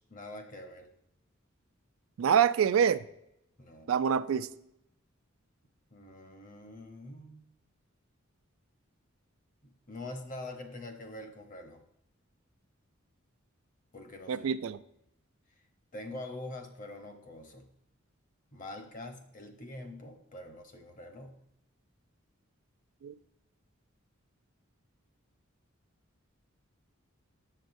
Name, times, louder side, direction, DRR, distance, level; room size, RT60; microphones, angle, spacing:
voice 1, 0.1-0.9 3.6-3.9 5.9-7.4 9.6-11.8 13.9-14.5 15.9-17.7 18.5-21.4, left 2 dB, 40° left, 5 dB, 0.9 m, -44 dB
voice 2, 2.2-3.0 3.9-4.5 14.3-14.8 23.0-23.1, right 8 dB, 75° right, 13 dB, 0.3 m, -26 dB
7.5 x 7.0 x 2.6 m, 0.79 s
head